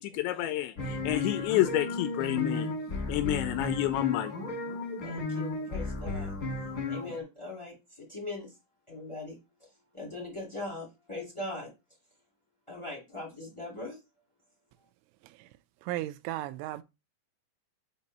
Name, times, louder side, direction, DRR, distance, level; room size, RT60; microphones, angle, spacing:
voice 1, 0.0-2.7 3.1-4.3, left 14 dB, 85° left, 2.6 m, -29 dB
sound 1, 0.8-7.2, left 3 dB, 60° left, 0.9 m, -34 dB
voice 2, 5.0-6.3 6.9-7.7 8.1-8.5 8.9-9.4 9.9-11.7 12.7-13.9, left 2 dB, 45° left, 0.4 m, -40 dB
voice 3, 15.9-16.8, right 15 dB, 85° right, 3.0 m, -34 dB
7.8 x 2.7 x 5.3 m
omnidirectional pair, 5.5 m